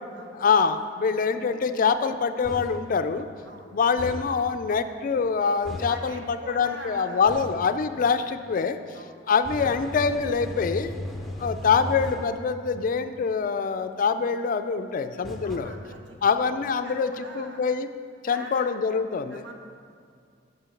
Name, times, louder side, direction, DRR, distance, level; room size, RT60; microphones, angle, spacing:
voice 1, 0.3-3.3 3.7-8.8 9.3-10.9 11.4-15.7 16.2-17.9 18.2-19.4, left 5 dB, 50° left, 9 dB, 0.4 m, -25 dB
sound 1, 2.4-2.9 4.0-4.4 5.6-6.1 7.3-7.7 9.4-12.4 15.2-15.6, left 1 dB, ahead, 0.6 m, -36 dB
voice 2, 5.9-7.4 8.9-9.2 15.4-16.2 16.8-17.6 18.2-18.7 19.3-19.5, right 2 dB, 75° right, 2 dB, 1.1 m, -43 dB
6.2 x 5.8 x 7.0 m, 2.3 s
head